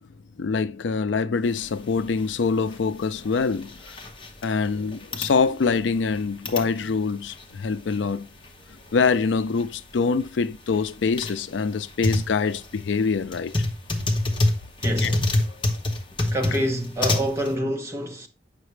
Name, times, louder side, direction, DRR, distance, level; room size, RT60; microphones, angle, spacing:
voice 1, 0.4-3.8 4.4-8.3 8.9-13.5 15.0-15.2, left 5 dB, 85° left, 0.4 m, -24 dB
sound 1, 1.5-17.5, left 2 dB, 25° left, 0.9 m, -29 dB
voice 2, 14.8-15.2 16.3-18.3, equal, 15° right, 1.0 m, -26 dB
8.0 x 5.8 x 3.2 m
head